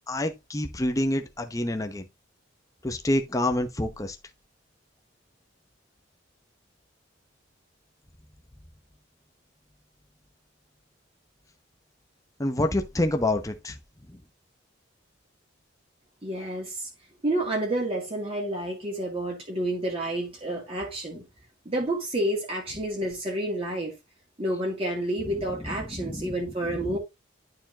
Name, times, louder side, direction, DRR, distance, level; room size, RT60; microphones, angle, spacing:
voice 1, 0.1-2.1 2.8-4.2 12.4-13.8 26.0-26.3 26.8-27.0, left 1 dB, 15° left, 0.8 m, -27 dB
voice 2, 16.2-16.9 17.2-21.2 21.7-23.9 24.4-27.0, right 1 dB, 30° right, 2.2 m, -29 dB
11.5 x 4.7 x 2.9 m
head